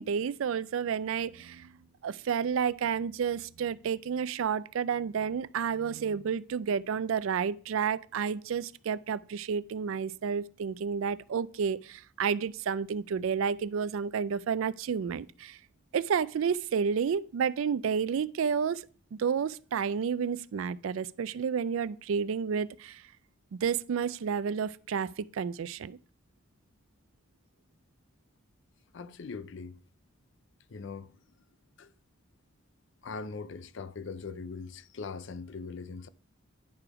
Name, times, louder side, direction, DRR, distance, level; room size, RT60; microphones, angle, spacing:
voice 1, 0.0-1.7 2.0-15.6 15.9-18.9 19.1-23.0 23.5-26.0, right 6 dB, 70° right, 0.4 m, -31 dB
voice 2, 28.9-29.8 30.7-31.1 31.8-31.9 33.0-36.1, left 4 dB, 60° left, 0.5 m, -41 dB
10.5 x 4.8 x 4.8 m
head